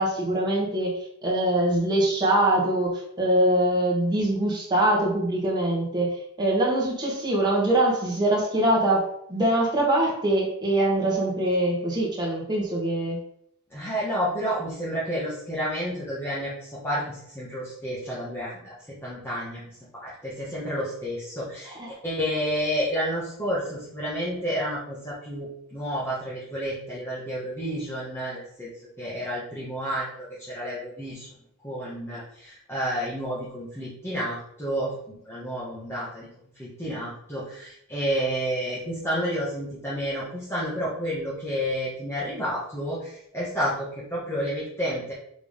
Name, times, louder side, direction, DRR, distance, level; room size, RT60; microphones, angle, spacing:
voice 1, 0.0-2.9 3.2-13.2 21.7-21.9, right 1 dB, 20° right, -4 dB, 1.6 m, -23 dB
voice 2, 13.7-19.6 19.9-21.8 22.0-28.7 29.0-31.3 31.6-36.3 36.6-45.1, equal, 10° left, -8 dB, 1.5 m, -30 dB
5.3 x 3.8 x 5.1 m, 0.72 s
head